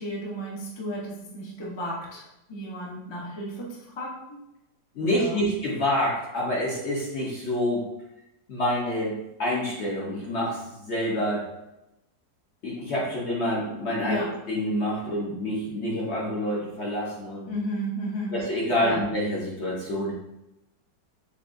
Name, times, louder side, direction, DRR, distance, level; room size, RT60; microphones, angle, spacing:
voice 1, 0.0-4.4 5.0-5.4 14.0-14.3 17.5-18.3 18.8-19.0, equal, 30° left, -4 dB, 0.5 m, -33 dB
voice 2, 4.9-7.8 8.5-11.4 12.6-17.5 18.3-20.1, left 1 dB, 50° left, -5 dB, 0.8 m, -27 dB
6.9 x 2.3 x 2.5 m, 0.92 s
omnidirectional pair, 1.9 m